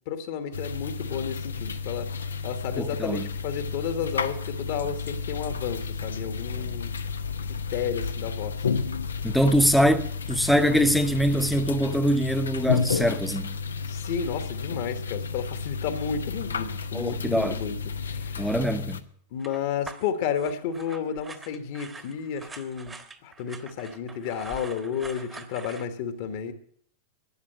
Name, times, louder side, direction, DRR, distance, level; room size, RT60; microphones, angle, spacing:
voice 1, 0.1-2.1 2.4-6.9 7.5-8.5 13.9-18.5 19.3-26.5, left 7 dB, 50° left, 1.5 m, -32 dB
sound 1, 0.5-19.0, left 5 dB, 70° left, 0.8 m, -32 dB
voice 2, 2.8-3.3 9.2-13.6 16.9-17.6 18.4-19.0, equal, ahead, 1.0 m, -23 dB
sound 2, 19.4-25.8, right 4 dB, 15° right, 1.4 m, -44 dB
12.5 x 9.6 x 7.7 m
figure-of-eight pair, 90°, 0 cm